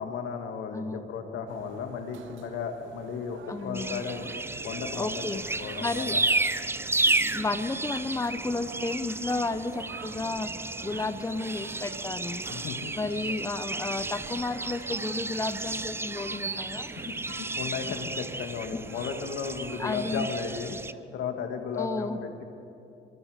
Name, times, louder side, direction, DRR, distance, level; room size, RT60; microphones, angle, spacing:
voice 1, 0.0-4.3 4.6-6.2 12.5-12.9 17.0-22.4, left 6 dB, 80° left, 5 dB, 2.2 m, -35 dB
voice 2, 0.7-1.0 3.5-4.0 5.0-5.4 5.8-6.2 7.3-12.4 13.0-16.9 18.7-18.8 19.8-20.3 21.8-22.2, left 3 dB, 15° left, 10 dB, 0.9 m, -32 dB
sound 1, 1.5-20.4, right 8 dB, 75° right, 1.0 m, -48 dB
sound 2, 3.7-20.9, right 2 dB, 10° right, 0.6 m, -33 dB
sound 3, 4.8-13.3 13.6-15.0, left 2 dB, 45° left, 6.0 m, -58 dB
24.0 x 23.5 x 5.2 m, 3.0 s
cardioid pair, 90°, 20 cm